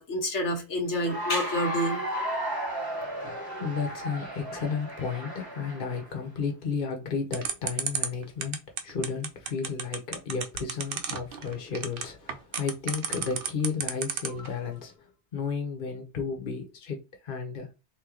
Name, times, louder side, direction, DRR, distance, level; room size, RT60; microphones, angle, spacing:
voice 1, 0.0-2.0, left 1 dB, 85° left, 1.6 m, -28 dB
Cheering / Applause, 0.9-6.1, right 1 dB, 20° right, 1.2 m, -34 dB
voice 2, 2.9-17.7, left 5 dB, 50° left, 1.2 m, -33 dB
sound 1, 7.3-14.5, right 6 dB, 55° right, 0.9 m, -31 dB
3.8 x 3.1 x 3.8 m
omnidirectional pair, 1.2 m